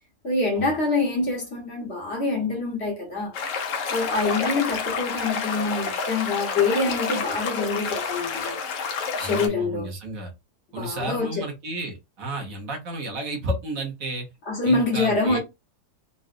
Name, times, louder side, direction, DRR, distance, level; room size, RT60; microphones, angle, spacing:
voice 1, 0.2-3.3 3.9-8.6 9.2-9.9 10.8-11.5 14.4-15.4, left 3 dB, 45° left, 1.2 m, -25 dB
sound 1, 3.3-9.5, left 5 dB, 60° left, 0.9 m, -29 dB
voice 2, 9.2-10.3 10.7-14.3 14.6-15.4, right 1 dB, 60° right, 1.4 m, -32 dB
3.9 x 2.3 x 2.4 m
omnidirectional pair, 1.7 m